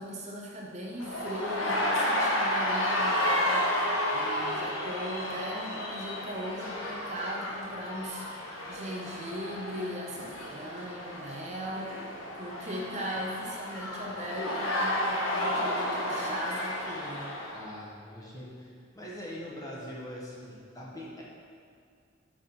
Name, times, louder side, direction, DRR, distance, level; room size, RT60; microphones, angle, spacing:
voice 1, 0.0-3.7 4.1-8.2 8.7-11.9 12.4-17.3, equal, 35° right, -2 dB, 0.7 m, -38 dB
sound 1, 1.0-17.6, left 1 dB, 90° left, 1.1 m, -32 dB
voice 2, 17.5-21.2, equal, 15° left, -5 dB, 1.1 m, -42 dB
6.2 x 5.0 x 5.5 m, 2.3 s
head